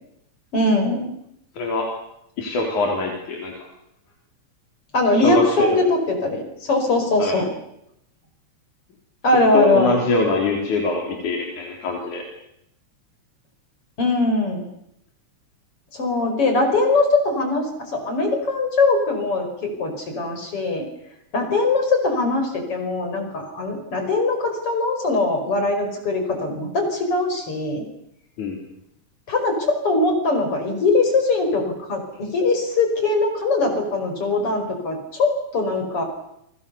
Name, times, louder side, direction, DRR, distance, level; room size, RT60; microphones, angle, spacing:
voice 1, 0.5-1.1 4.9-7.5 9.2-9.9 14.0-14.7 15.9-20.8 21.3-27.8 29.3-36.0, left 2 dB, 50° left, 5 dB, 6.0 m, -21 dB
voice 2, 1.5-1.9 2.4-3.5 5.1-5.7 7.2-7.3 9.5-12.2 28.4-28.6, left 3 dB, 90° left, 1 dB, 5.1 m, -23 dB
30.0 x 24.0 x 7.0 m, 0.79 s
omnidirectional pair, 3.4 m